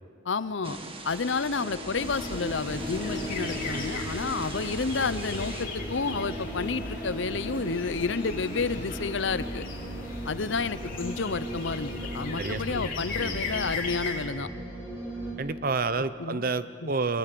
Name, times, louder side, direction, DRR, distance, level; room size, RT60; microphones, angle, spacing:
voice 1, 0.2-0.8 1.0-9.6 10.3-14.5 16.2-16.5 16.8-16.9, left 4 dB, 70° left, 15 dB, 0.7 m, -30 dB
Thunder / Rain, 0.6-5.7, right 2 dB, 30° right, 1.9 m, -41 dB
sound 1, 1.1-15.3, equal, 10° right, 5.1 m, -38 dB
sound 2, 1.9-14.3, left 3 dB, 45° left, 3.8 m, -38 dB
voice 2, 12.4-13.4 15.4-17.2, right 4 dB, 50° right, 13 dB, 0.7 m, -30 dB
26.0 x 21.0 x 7.7 m, 2.3 s
head